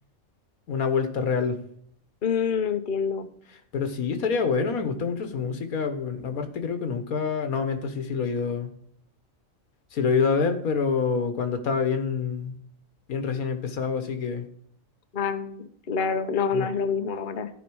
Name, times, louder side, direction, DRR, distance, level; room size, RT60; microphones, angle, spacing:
voice 1, 0.7-1.6 3.7-8.7 9.9-12.5 13.1-14.4 16.5-16.7, left 5 dB, 85° left, 7 dB, 1.7 m, -26 dB
voice 2, 2.2-3.3 15.1-17.5, left 6 dB, 40° left, 7 dB, 0.9 m, -27 dB
13.0 x 5.3 x 4.7 m, 0.66 s
omnidirectional pair, 1.5 m